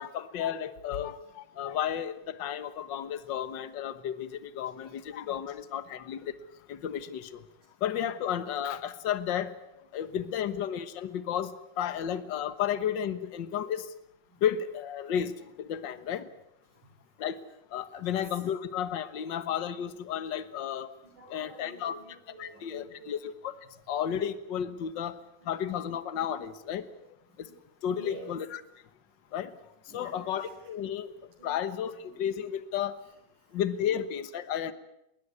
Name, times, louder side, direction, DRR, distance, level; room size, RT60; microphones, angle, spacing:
voice 1, 0.0-6.4 6.7-7.4 7.8-13.9 14.4-16.3 17.2-17.4 17.7-20.9 21.3-21.9 22.4-23.5 23.9-26.9 27.4-27.5 27.8-28.4 29.3-29.6 29.9-31.1 31.4-33.0 33.5-34.7, left 9 dB, 60° left, 13 dB, 1.2 m, -33 dB
voice 2, 10.1-10.5 14.3-14.4 15.8-16.0 16.7-16.9 17.8-18.4 21.0-23.2 23.6-23.8 25.4-25.8 26.9-28.3 29.9-30.7 31.4-32.2 33.0-34.0 34.7-34.8, right 1 dB, 70° right, 5 dB, 6.2 m, -52 dB
20.5 x 20.0 x 9.7 m, 0.84 s
omnidirectional pair, 3.8 m